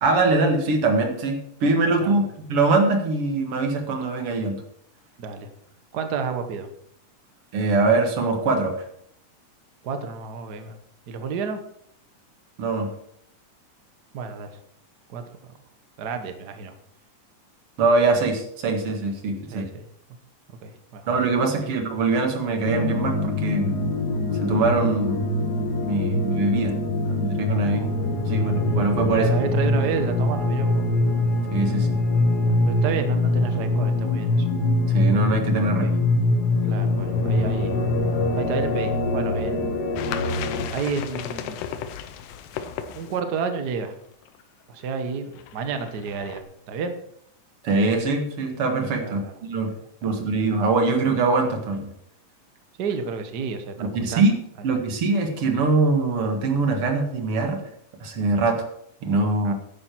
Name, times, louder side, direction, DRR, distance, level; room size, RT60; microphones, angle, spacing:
voice 1, 0.0-4.6 7.5-8.8 12.6-12.9 17.8-19.7 21.1-23.8 24.4-25.2 25.8-26.8 27.0-27.8 28.3-29.3 31.5-32.0 34.9-35.9 47.6-49.7 50.0-51.9 53.8-54.4 54.6-57.6 58.0-58.6 59.0-59.5, right 3 dB, 50° right, 4 dB, 2.4 m, -23 dB
voice 2, 5.2-5.5 5.9-6.7 9.8-10.8 11.1-11.6 14.1-14.5 15.1-15.2 16.0-16.7 19.5-19.9 20.6-21.1 21.6-21.7 27.6-28.0 29.1-30.9 32.5-34.5 35.8-35.9 36.7-37.8 38.3-39.8 40.7-41.6 43.0-43.9 44.7-46.9 49.0-49.3 50.0-50.1 52.8-54.2 59.4-59.5, right 5 dB, 90° right, 7 dB, 0.8 m, -30 dB
sound 1, 22.6-40.7, left 2 dB, 55° left, 1.1 m, -23 dB
sound 2, 40.0-43.4 43.8-43.9 44.2-44.4 44.8-44.9 45.3-46.4, left 9 dB, 85° left, 2.4 m, -35 dB
12.0 x 10.0 x 4.5 m, 0.71 s
omnidirectional pair, 3.6 m